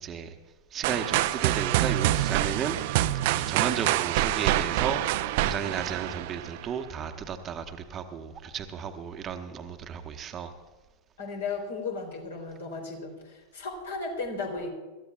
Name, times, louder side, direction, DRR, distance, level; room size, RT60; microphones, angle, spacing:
voice 1, 0.0-0.4 0.7-5.1 5.4-10.5, right 7 dB, 25° right, 1.0 m, -34 dB
sound 1, 0.8-6.7, right 14 dB, 50° right, 0.5 m, -26 dB
voice 2, 11.2-14.7, left 4 dB, 65° left, 3.3 m, -35 dB
25.5 x 13.5 x 2.4 m
figure-of-eight pair, 90°, 0 cm